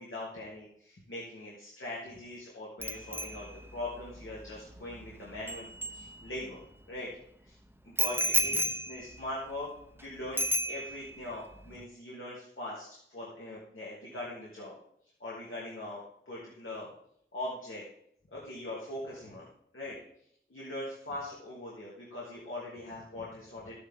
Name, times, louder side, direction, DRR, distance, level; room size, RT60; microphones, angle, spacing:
voice 1, 0.0-6.6 6.9-7.1 7.4-7.6 7.8-9.7 9.9-14.7 15.2-16.0 16.3-16.9 17.3-17.8 18.3-19.5 19.7-20.0 20.5-23.8, left 1 dB, 80° left, -6 dB, 2.8 m, -41 dB
Bicycle bell, 2.8-6.6 8.0-10.0 10.4-11.2 11.5-11.8, right 1 dB, 10° right, 0.9 m, -34 dB
13.0 x 10.0 x 3.8 m, 0.70 s
wide cardioid pair, 45°, 21 cm